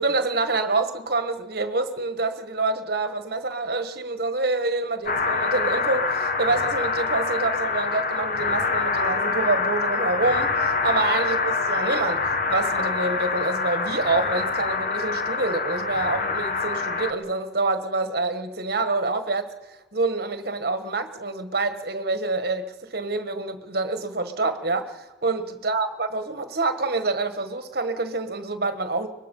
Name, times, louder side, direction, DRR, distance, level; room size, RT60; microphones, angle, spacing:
voice 1, 0.0-19.5 19.9-29.1, right 3 dB, 55° right, 1.5 m, -27 dB
sound 1, 5.1-17.1, left 4 dB, 45° left, 1.4 m, -25 dB
23.0 x 21.0 x 5.5 m
head